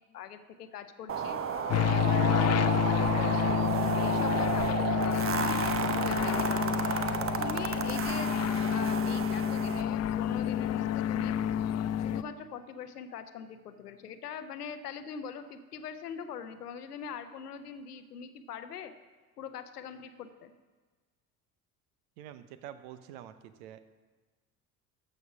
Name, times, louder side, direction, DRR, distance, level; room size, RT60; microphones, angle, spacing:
voice 1, 0.1-1.4 1.8-3.5 4.0-6.9 7.4-8.4 8.7-11.4 12.0-18.9 19.4-20.5, left 7 dB, 85° left, 10 dB, 0.7 m, -42 dB
sound 1, 1.1-9.8, right 6 dB, 30° right, 0.8 m, -32 dB
sound 2, 1.7-12.2, left 9 dB, 35° left, 0.5 m, -29 dB
voice 2, 22.2-23.8, right 11 dB, 65° right, 12 dB, 0.9 m, -47 dB
14.0 x 5.4 x 5.9 m, 1.3 s
hypercardioid pair, 60°, 45 cm